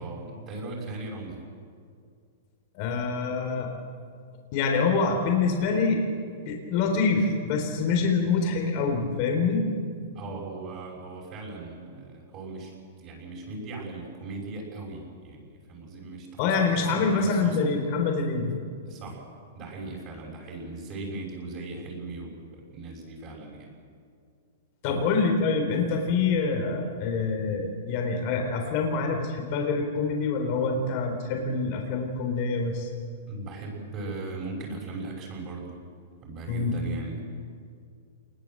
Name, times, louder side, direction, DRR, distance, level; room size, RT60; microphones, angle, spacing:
voice 1, 0.0-1.4 10.1-15.4 15.7-17.7 18.9-19.2 19.5-23.7 24.9-25.0 33.3-35.8 36.2-37.2, right 3 dB, 30° right, -2 dB, 6.3 m, -38 dB
voice 2, 2.7-3.7 4.5-6.0 6.4-9.7 16.4-18.5 24.8-32.9 36.5-36.7, left 4 dB, 40° left, 3 dB, 3.9 m, -26 dB
27.0 x 20.5 x 7.8 m, 2.3 s
hypercardioid pair, 160°, 0 cm